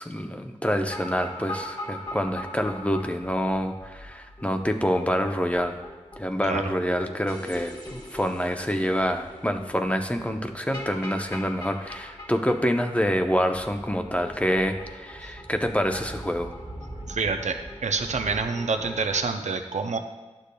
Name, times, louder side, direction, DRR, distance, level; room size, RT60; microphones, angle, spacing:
voice 1, 0.0-5.8 6.2-16.5, equal, 10° left, 5 dB, 0.6 m, -27 dB
sound 1, 0.8-19.3, left 1 dB, 35° left, 1.1 m, -42 dB
Speech / Wind, 13.5-18.4, right 2 dB, 35° right, 1.5 m, -43 dB
voice 2, 17.1-20.0, right 4 dB, 75° right, 6 dB, 0.5 m, -27 dB
11.5 x 6.7 x 2.2 m, 1.2 s
wide cardioid pair, 65°, 12 cm